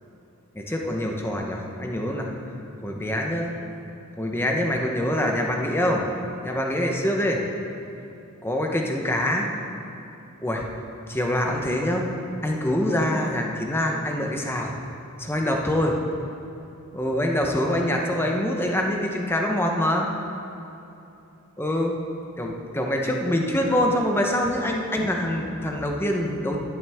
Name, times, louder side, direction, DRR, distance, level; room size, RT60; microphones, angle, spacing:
voice 1, 0.5-2.3 2.8-3.5 4.2-6.1 6.4-7.4 8.4-9.5 10.4-10.6 11.1-12.0 12.4-14.7 15.2-16.0 16.9-20.1 21.6-21.9 22.4-26.6, left 1 dB, 10° left, 1 dB, 0.9 m, -25 dB
12.0 x 10.5 x 3.6 m, 2.9 s
head